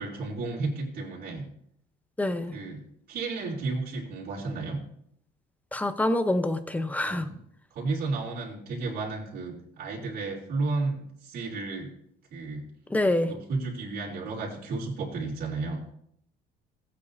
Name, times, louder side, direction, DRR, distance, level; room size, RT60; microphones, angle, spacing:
voice 1, 0.0-1.5 2.5-2.8 3.1-4.8 7.0-7.4 7.7-11.9 12.3-12.7 13.2-15.8, right 3 dB, 65° right, -5 dB, 3.2 m, -32 dB
voice 2, 2.2-2.5 5.7-7.3 12.9-13.3, left 1 dB, 10° left, 10 dB, 0.8 m, -26 dB
16.0 x 8.5 x 2.7 m, 0.70 s
cardioid pair, 110°, 17 cm